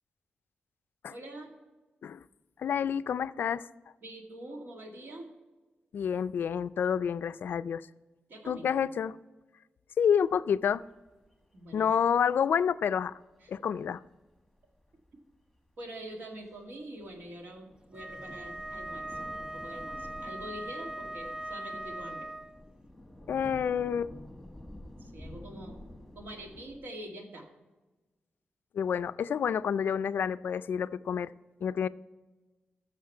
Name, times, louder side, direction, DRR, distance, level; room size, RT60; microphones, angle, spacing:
voice 1, 1.1-1.6 4.0-5.3 8.3-8.9 11.5-11.9 13.4-13.5 15.8-22.3 25.0-25.8 26.1-27.5, right 1 dB, 75° right, 2 dB, 2.0 m, -45 dB
voice 2, 2.6-3.7 5.9-7.9 8.5-9.2 10.0-10.8 11.7-13.1 13.5-14.0 23.3-24.1 28.7-31.3 31.6-31.9, left 7 dB, 70° left, 15 dB, 0.3 m, -28 dB
sound 1, 10.6-13.0 13.3-13.4 13.6-15.4 15.7-15.8 16.0-26.8, left 1 dB, 5° right, 1.5 m, -49 dB
Wind instrument woodwind instrument, 17.9-22.6, right 1 dB, 25° right, 0.5 m, -40 dB
14.5 x 6.5 x 4.5 m, 1.2 s
wide cardioid pair, 170°, 4 cm